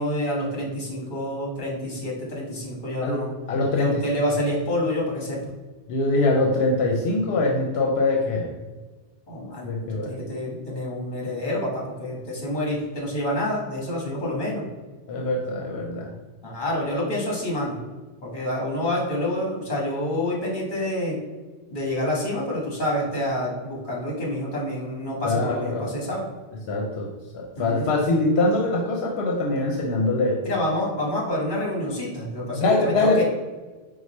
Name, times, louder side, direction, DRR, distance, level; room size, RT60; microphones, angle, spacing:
voice 1, 0.0-3.3 3.7-5.4 9.3-14.6 16.4-17.8 18.2-21.2 21.7-26.3 27.5-27.9 30.4-33.2, left 1 dB, 50° left, -3 dB, 1.4 m, -28 dB
voice 2, 3.5-4.2 5.9-8.5 9.6-10.1 15.1-16.1 25.2-25.8 26.7-27.1 27.3-30.4 32.5-33.2, left 2 dB, 80° left, 0 dB, 0.9 m, -23 dB
4.6 x 2.1 x 4.2 m, 1.3 s
omnidirectional pair, 1.1 m